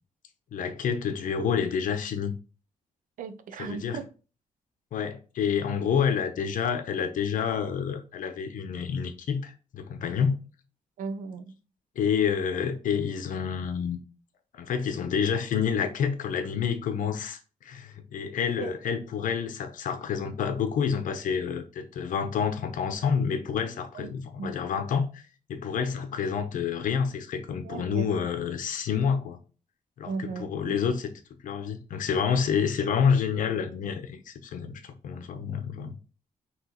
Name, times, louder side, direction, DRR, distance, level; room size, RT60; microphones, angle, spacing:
voice 1, 0.5-2.3 3.6-4.0 4.9-10.4 12.0-14.0 14.5-25.2 25.5-29.4 30.0-31.1 31.4-36.1, left 7 dB, 85° left, 0.8 m, -28 dB
voice 2, 3.2-4.0 11.0-11.6 18.6-18.7 23.9-24.1 24.4-24.7 27.6-28.3 30.1-30.8, right 5 dB, 80° right, 0.7 m, -36 dB
5.9 x 3.1 x 2.9 m
wide cardioid pair, 165°, 13 cm